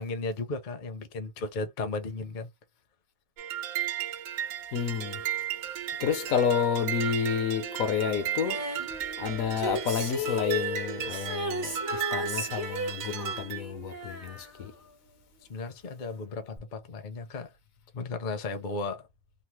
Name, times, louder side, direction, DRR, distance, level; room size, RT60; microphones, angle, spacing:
voice 1, 0.0-2.5 15.5-17.5 17.9-19.1, left 3 dB, 45° left, 0.7 m, -35 dB
sound 1, 3.4-13.6, right 10 dB, 75° right, 1.0 m, -35 dB
voice 2, 4.7-5.2 6.0-8.9 9.2-14.7, left 7 dB, 80° left, 1.2 m, -30 dB
Female singing, 8.4-15.4 16.6-16.7, equal, 20° right, 0.4 m, -36 dB
3.2 x 2.0 x 2.9 m
omnidirectional pair, 1.4 m